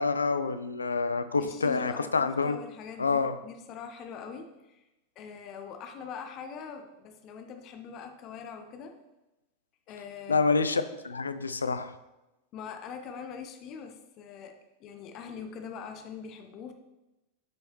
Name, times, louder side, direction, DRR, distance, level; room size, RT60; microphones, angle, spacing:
voice 1, 0.0-2.6 3.0-3.4 10.3-11.9, left 4 dB, 75° left, 11 dB, 0.5 m, -27 dB
voice 2, 1.4-4.8 5.2-9.0 9.9-10.4 12.5-16.7, left 6 dB, 35° left, 6 dB, 0.9 m, -43 dB
12.0 x 4.8 x 3.1 m, 0.99 s
figure-of-eight pair, 90°, 0 cm